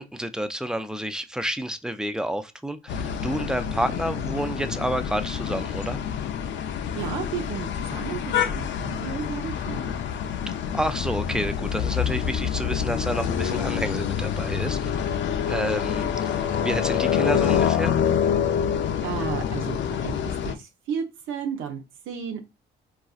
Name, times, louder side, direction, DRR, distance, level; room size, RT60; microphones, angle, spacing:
voice 1, 0.0-6.0 10.7-18.0, right 1 dB, 5° right, 0.3 m, -29 dB
sound 1, 2.9-20.5, left 8 dB, 65° left, 0.5 m, -27 dB
voice 2, 6.9-10.0 19.0-22.5, right 7 dB, 90° right, 0.6 m, -33 dB
4.0 x 2.4 x 2.3 m
cardioid pair, 90°, 20 cm